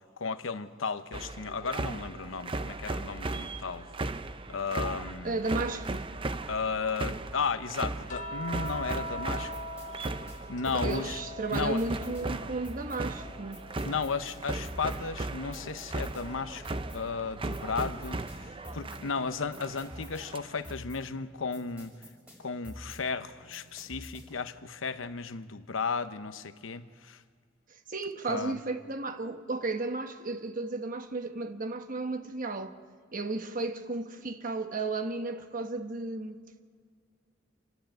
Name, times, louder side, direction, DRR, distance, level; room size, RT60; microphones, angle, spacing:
voice 1, 0.2-3.9 4.5-5.5 6.5-9.5 10.5-11.2 11.5-11.8 13.8-21.9 22.4-27.2 28.3-28.6, left 5 dB, 90° left, 0.9 m, -34 dB
sound 1, 1.1-20.7, right 2 dB, 25° right, 0.6 m, -37 dB
voice 2, 5.2-6.1 10.7-13.6 27.7-32.7 33.1-36.6, right 3 dB, 45° right, 1.1 m, -34 dB
sound 2, 8.1-12.6 12.9-14.6 16.1-16.3, equal, 40° left, 0.9 m, -42 dB
sound 3, 8.6-24.5, equal, 5° right, 6.0 m, -48 dB
28.0 x 10.5 x 8.8 m
head